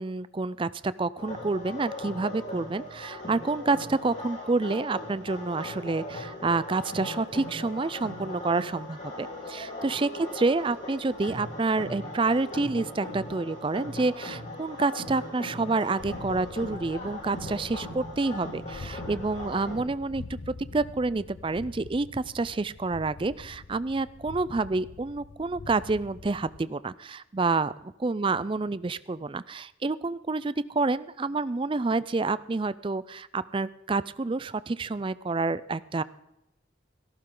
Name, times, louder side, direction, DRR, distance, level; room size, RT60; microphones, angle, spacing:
voice 1, 0.0-36.0, right 3 dB, 25° right, 17 dB, 0.4 m, -28 dB
sound 1, 1.2-19.8, left 1 dB, 40° left, 6.0 m, -39 dB
sound 2, 16.0-26.6, left 3 dB, 85° left, 0.6 m, -45 dB
17.0 x 14.0 x 3.8 m, 0.91 s
head